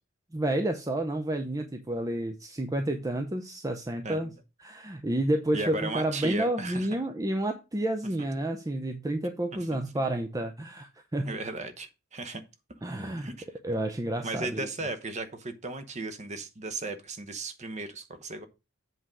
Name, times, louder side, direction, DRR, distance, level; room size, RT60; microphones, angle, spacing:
voice 1, 0.3-4.3 4.6-11.3 12.8-13.3 13.6-14.7, right 1 dB, 15° right, 0.6 m, -30 dB
voice 2, 5.5-6.9 9.5-9.6 11.2-12.4 13.2-13.5 14.2-18.5, right 3 dB, 30° right, 0.9 m, -36 dB
7.9 x 3.7 x 6.1 m
head